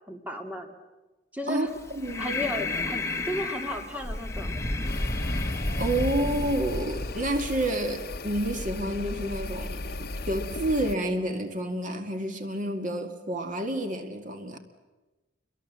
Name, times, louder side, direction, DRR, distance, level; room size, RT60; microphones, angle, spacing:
voice 1, 0.1-0.7 1.3-1.7 2.2-4.6, left 1 dB, 10° right, 2.4 m, -34 dB
Breathing, 1.7-7.7, left 2 dB, 15° left, 2.0 m, -31 dB
voice 2, 1.9-2.3 5.8-10.0 10.3-14.6, right 1 dB, 45° right, 2.1 m, -29 dB
sound 1, 4.8-10.9, left 2 dB, 55° left, 1.1 m, -37 dB
29.5 x 23.0 x 7.5 m
head